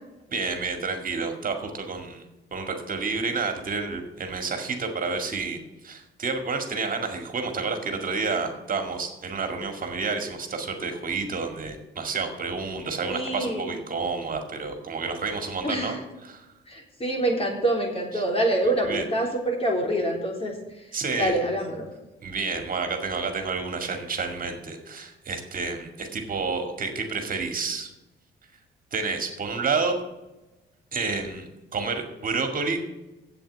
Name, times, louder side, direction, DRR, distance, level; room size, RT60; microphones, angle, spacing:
voice 1, 0.3-2.2 2.5-5.6 5.8-15.9 16.2-16.5 18.1-18.2 18.8-19.0 20.9-21.4 22.2-27.9 28.9-30.0 30.9-32.8, right 4 dB, 45° right, 5 dB, 2.1 m, -29 dB
voice 2, 13.1-13.7 15.6-16.0 16.7-20.6 21.2-21.9, right 1 dB, 30° left, 1 dB, 3.5 m, -26 dB
8.3 x 7.8 x 8.2 m, 1.0 s
cardioid pair, 90°, 20 cm